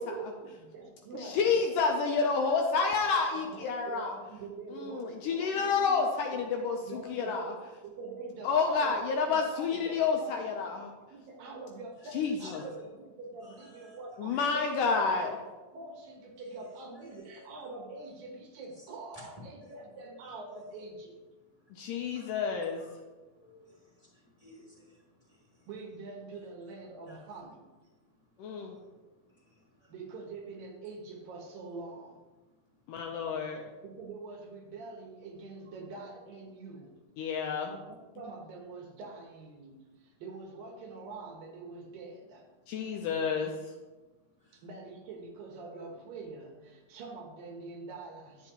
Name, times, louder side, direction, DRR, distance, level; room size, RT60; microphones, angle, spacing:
voice 1, 0.0-1.7 2.0-2.2 3.1-6.0 6.3-6.4 6.8-15.4 15.7-21.2 25.7-27.7 29.9-32.2 33.8-37.0 37.6-42.5 44.5-48.5, right 3 dB, 75° right, 2 dB, 2.8 m, -45 dB
voice 2, 1.2-4.2 4.7-7.5 8.4-10.9 12.1-12.6 14.2-15.3 21.7-22.8 28.4-28.8 32.9-33.6 37.2-37.7 42.7-43.5, left 5 dB, 75° left, 2 dB, 2.1 m, -29 dB
voice 3, 13.4-14.0 14.3-14.6 17.0-17.4 19.6-20.0 22.1-22.3 22.8-22.9 23.3-23.8 24.1-25.0 27.1-27.2 28.4-28.9 29.8-29.9 44.4-44.6, left 1 dB, 10° left, -6 dB, 2.3 m, -55 dB
11.5 x 7.7 x 3.0 m, 1.2 s
omnidirectional pair, 4.2 m